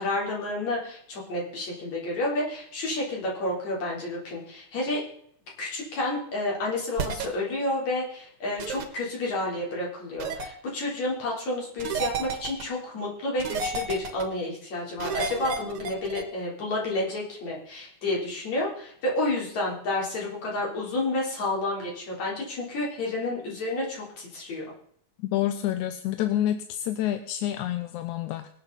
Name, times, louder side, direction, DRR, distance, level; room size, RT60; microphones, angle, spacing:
voice 1, 0.0-5.0 5.6-24.7, left 2 dB, 65° left, -3 dB, 5.1 m, -30 dB
sound 1, 7.0-7.3 8.6-8.8 10.2-10.5 11.8-12.6 13.4-14.2 15.0-16.2, right 4 dB, 55° right, 2.0 m, -31 dB
voice 2, 25.2-28.5, left 12 dB, 80° left, 8 dB, 2.1 m, -28 dB
24.5 x 8.3 x 4.0 m, 0.64 s
omnidirectional pair, 3.5 m